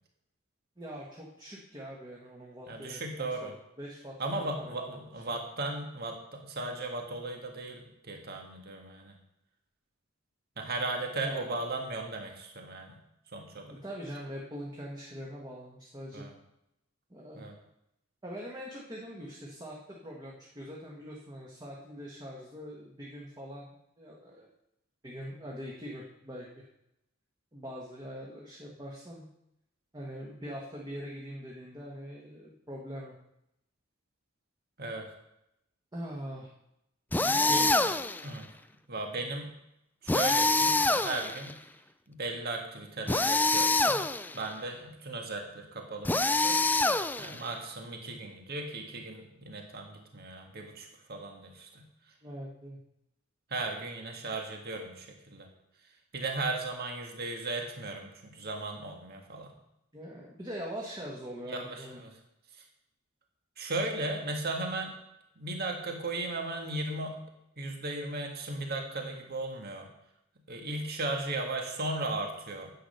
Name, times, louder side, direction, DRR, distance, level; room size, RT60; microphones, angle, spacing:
voice 1, 0.8-3.5 3.8-4.9 11.2-11.6 13.7-16.3 17.1-17.5 18.2-24.5 25.0-26.7 27.5-29.3 29.9-33.2 35.9-36.5 37.3-38.0 52.2-52.8 59.9-62.0, equal, 20° right, -3 dB, 1.6 m, -43 dB
voice 2, 2.7-3.5 4.2-9.2 10.6-13.0 13.3-13.8 16.1-16.3 17.4-17.6 34.8-35.1 37.2-37.7 38.2-38.5 38.9-39.5 40.0-41.6 42.1-44.1 44.3-46.6 47.2-51.8 53.5-55.5 56.1-59.5 61.5-62.1 63.6-64.9 65.4-67.2 67.6-69.9 70.5-72.7, right 2 dB, 50° right, 2 dB, 1.7 m, -36 dB
sound 1, 37.1-38.3 40.1-41.5 43.1-44.4 46.0-47.5, left 2 dB, 10° left, 0.4 m, -26 dB
10.0 x 8.5 x 5.6 m, 0.82 s
head